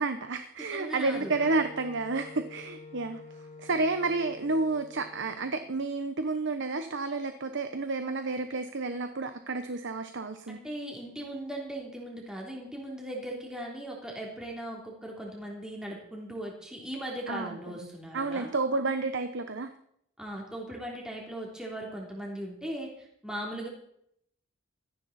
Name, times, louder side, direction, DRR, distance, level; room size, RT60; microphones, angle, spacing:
voice 1, 0.0-3.2 3.6-10.6 17.3-17.6 17.8-19.7, right 3 dB, 55° right, 9 dB, 1.1 m, -30 dB
voice 2, 0.7-1.3 10.5-18.5 20.2-23.7, right 1 dB, 5° right, -2 dB, 3.4 m, -38 dB
Wind instrument woodwind instrument, 1.1-5.7, left 3 dB, 30° left, 2.7 m, -48 dB
17.0 x 14.5 x 4.3 m, 0.70 s
head